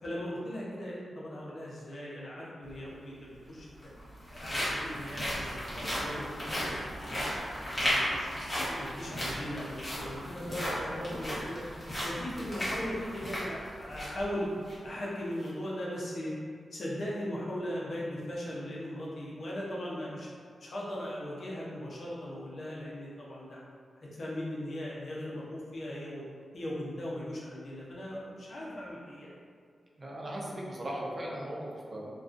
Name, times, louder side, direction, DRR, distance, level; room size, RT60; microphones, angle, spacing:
voice 1, 0.0-3.7 4.3-6.8 7.0-7.4 7.6-8.3 8.8-11.6 12.0-14.5 14.8-16.3 16.7-20.3 20.6-23.6 24.1-26.2 26.5-29.3, left 1 dB, 60° left, -6 dB, 0.6 m, -38 dB
sound 1, 2.6-2.7 3.7-14.2 14.6-14.7 15.3-15.5, equal, 30° left, 1.0 m, -35 dB
voice 2, 30.0-32.1, right 1 dB, 45° right, -4 dB, 0.5 m, -38 dB
2.3 x 2.3 x 2.4 m, 2.1 s
cardioid pair, 65°, 0 cm